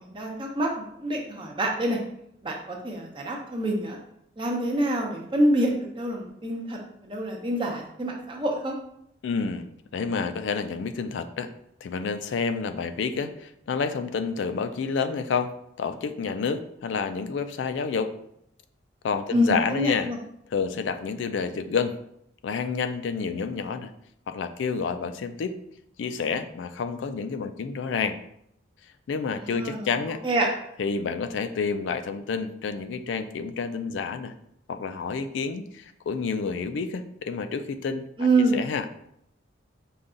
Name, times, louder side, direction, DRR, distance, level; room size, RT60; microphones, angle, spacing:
voice 1, 0.0-2.0 2.4-4.0 4.4-8.7 19.3-20.2 29.4-29.9 30.2-30.5 38.2-38.6, right 1 dB, 25° right, 0 dB, 0.7 m, -26 dB
voice 2, 9.2-9.7 9.9-11.5 11.8-18.1 19.0-20.1 20.5-22.0 22.4-23.9 24.3-25.6 26.0-28.2 29.1-30.2 30.8-34.3 34.7-38.1 38.5-38.9, left 5 dB, 80° left, 9 dB, 0.3 m, -29 dB
5.2 x 2.3 x 3.8 m, 0.74 s
head